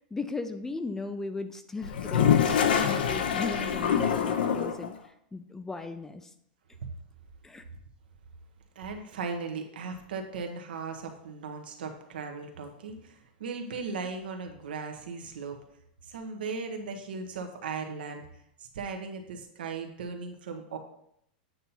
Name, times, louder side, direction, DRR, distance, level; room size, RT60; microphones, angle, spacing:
voice 1, 0.1-6.3 7.4-7.6, left 3 dB, 10° left, 9 dB, 0.4 m, -37 dB
Toilet flush, 1.8-4.9, left 8 dB, 80° left, 0.7 m, -25 dB
voice 2, 8.8-15.6 16.1-18.2 18.7-20.8, right 4 dB, 85° right, 4 dB, 1.1 m, -37 dB
8.3 x 2.9 x 5.5 m, 0.75 s
supercardioid pair, 140°, 5 cm